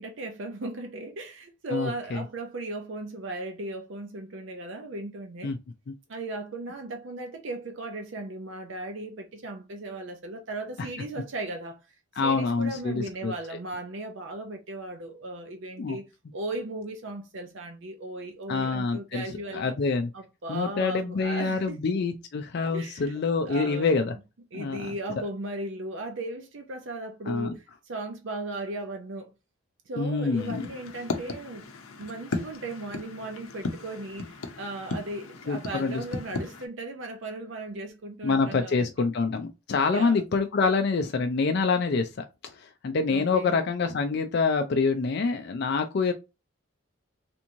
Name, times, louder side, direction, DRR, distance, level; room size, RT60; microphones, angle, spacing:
voice 1, 0.0-5.5 6.1-11.8 12.2-19.7 20.1-21.8 22.7-24.1 24.5-29.3 29.9-31.7 32.0-39.1 39.9-40.2 43.1-43.6, right 2 dB, 60° right, 0.6 m, -37 dB
voice 2, 1.7-2.2 5.4-5.6 12.2-13.3 15.8-16.0 18.5-19.2 19.5-20.1 20.5-24.1 24.5-24.9 27.3-27.5 30.0-30.6 35.5-36.0 38.2-42.2 42.6-46.1, left 4 dB, 50° left, 0.4 m, -26 dB
sound 1, 30.4-36.7, left 3 dB, 90° left, 0.7 m, -36 dB
3.4 x 2.9 x 2.6 m
head